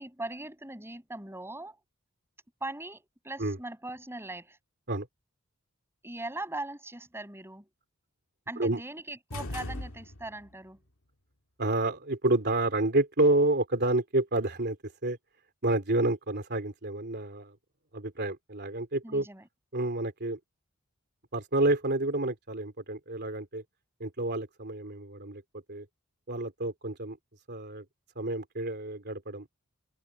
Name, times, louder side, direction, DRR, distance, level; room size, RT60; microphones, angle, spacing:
voice 1, 0.0-1.8 2.6-4.6 6.0-7.7 8.5-10.8 19.0-19.5, right 2 dB, 10° right, 6.7 m, -40 dB
sound 1, 9.3-10.5, left 1 dB, 65° left, 2.1 m, -39 dB
voice 2, 11.6-15.2 15.6-17.5 17.9-19.3 19.7-20.4 21.3-23.6 24.0-25.4 25.7-25.8 26.3-27.2 27.5-27.8 28.1-29.5, right 2 dB, 50° right, 3.4 m, -29 dB
head